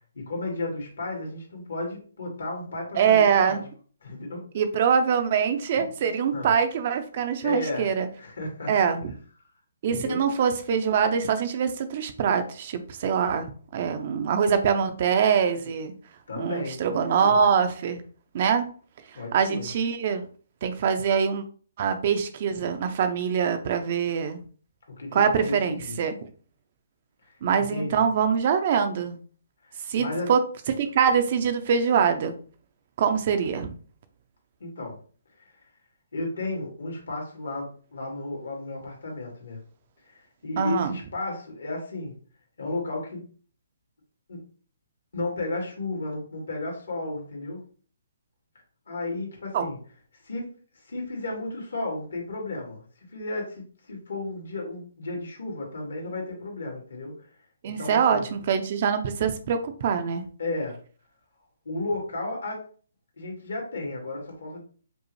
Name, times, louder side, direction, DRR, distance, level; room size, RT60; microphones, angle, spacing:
voice 1, 0.1-3.6 4.0-4.5 5.7-5.8 6.3-6.5 7.4-7.9 8.2-8.7 9.9-10.2 16.3-17.4 19.1-19.7 25.0-26.0 27.3-28.1 29.6-30.3 34.6-35.0 35.4-35.5 36.1-39.6 40.0-42.2 42.6-43.3 44.3-44.4 45.1-47.6 48.9-49.8 50.2-50.5 50.9-52.8 53.1-57.3 57.7-58.3 60.4-60.8 61.7-62.6 63.2-64.6, left 2 dB, 75° left, 0 dB, 1.8 m, -33 dB
voice 2, 3.0-3.6 4.5-8.1 8.7-9.0 9.8-15.9 16.4-18.0 18.3-18.6 19.3-20.3 20.6-21.4 21.8-24.4 25.1-26.1 27.4-29.2 29.9-32.3 33.0-33.7 40.6-41.0 49.5-49.6 57.6-60.2, right 7 dB, 45° right, 9 dB, 0.5 m, -24 dB
5.2 x 2.0 x 3.1 m, 0.42 s
hypercardioid pair, 155°, 0 cm